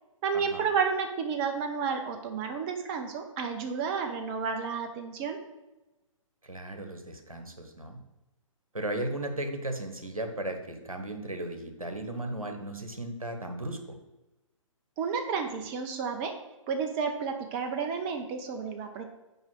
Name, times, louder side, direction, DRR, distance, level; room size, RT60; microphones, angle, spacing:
voice 1, 0.2-5.4 15.0-16.3 16.7-19.0, right 5 dB, 20° right, 5 dB, 0.5 m, -31 dB
voice 2, 6.4-8.0 8.7-13.8, right 1 dB, 85° right, 5 dB, 1.2 m, -36 dB
5.5 x 4.8 x 6.3 m, 1.0 s
figure-of-eight pair, 125°, 18 cm